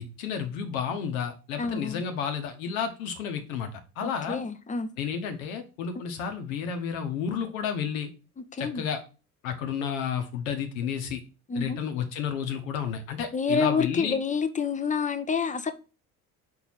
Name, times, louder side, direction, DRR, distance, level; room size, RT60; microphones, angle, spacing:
voice 1, 0.0-4.4 5.0-8.1 8.6-9.0 9.4-11.2 11.5-14.1, left 7 dB, 70° left, 1.2 m, -31 dB
voice 2, 1.6-2.0 4.0-4.9 8.4-8.8 11.5-11.8 13.3-15.7, left 5 dB, 15° left, 0.7 m, -28 dB
4.7 x 3.8 x 5.6 m
figure-of-eight pair, 55°, 43 cm